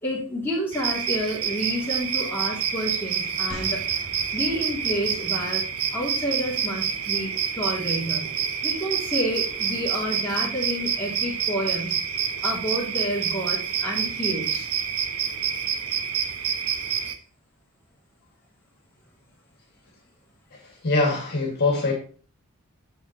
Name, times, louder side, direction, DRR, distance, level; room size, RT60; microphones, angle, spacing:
voice 1, 0.0-3.8 4.3-5.6 5.9-8.3 8.6-12.0 12.4-14.7, equal, 10° left, -5 dB, 2.7 m, -29 dB
sound 1, 0.7-17.2, right 7 dB, 85° right, 0.8 m, -28 dB
sound 2, 3.5-6.9 7.2-7.3, equal, 30° right, 2.5 m, -44 dB
voice 2, 20.6-21.9, left 3 dB, 50° left, -1 dB, 2.0 m, -23 dB
7.9 x 7.0 x 3.0 m, 0.39 s
head